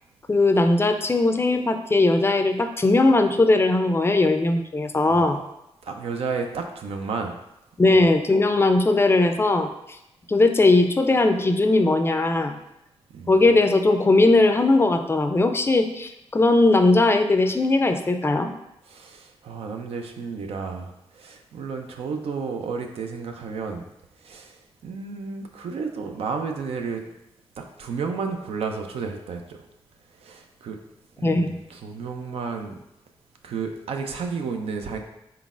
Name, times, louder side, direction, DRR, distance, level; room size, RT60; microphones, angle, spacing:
voice 1, 0.3-5.4 7.8-9.7 10.3-12.6 13.3-18.5 31.2-31.6, left 2 dB, 25° left, 7 dB, 0.4 m, -19 dB
voice 2, 5.0-5.3 5.8-7.4 7.9-8.1 13.1-13.4 18.9-23.9 24.2-27.0 27.6-29.6 30.2-30.8 31.2-32.7 33.4-35.0, right 5 dB, 80° right, 4 dB, 0.4 m, -32 dB
4.2 x 3.8 x 2.4 m, 0.85 s
cardioid pair, 80°, 10 cm